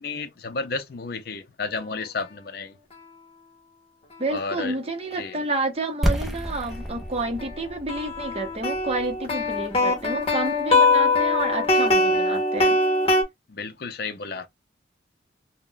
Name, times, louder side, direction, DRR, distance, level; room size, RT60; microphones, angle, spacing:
voice 1, 0.0-2.8 4.3-4.8 5.1-5.4 13.5-14.5, left 4 dB, 55° left, 0.5 m, -32 dB
voice 2, 4.2-12.8, right 2 dB, 35° right, 0.7 m, -30 dB
sound 1, 6.0-11.8, equal, ahead, 0.5 m, -32 dB
sound 2, 6.7-6.8 7.4-13.2, left 2 dB, 30° left, 0.9 m, -22 dB
2.4 x 2.1 x 3.7 m
head